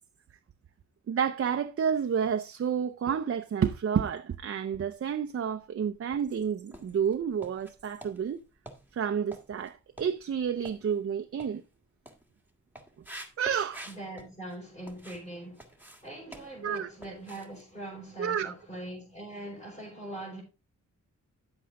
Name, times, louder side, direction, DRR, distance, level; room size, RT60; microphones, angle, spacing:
voice 1, 1.1-8.4 8.9-11.6 13.4-13.8 16.6-16.9 18.2-18.5, right 7 dB, 45° right, 0.6 m, -30 dB
sound 1, 4.6-5.3 5.8-15.3 15.5-18.7 19.0-19.2 19.6-19.7, right 1 dB, 5° right, 1.6 m, -50 dB
voice 2, 13.9-20.4, right 1 dB, 25° left, 4.9 m, -42 dB
9.7 x 7.8 x 3.6 m
wide cardioid pair, 120°, 31 cm